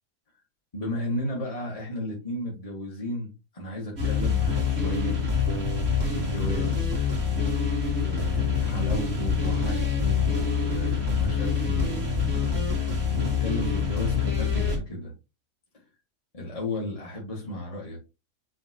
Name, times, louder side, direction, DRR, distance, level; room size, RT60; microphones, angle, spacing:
voice 1, 0.7-5.2 6.1-7.1 7.9-12.3 13.1-15.1 15.7-15.8 16.3-18.0, left 1 dB, 25° left, -5 dB, 2.0 m, -34 dB
sound 1, 4.0-14.8, left 5 dB, 75° right, 3.1 m, -25 dB
9.0 x 3.9 x 3.0 m, 0.29 s
omnidirectional pair, 1.5 m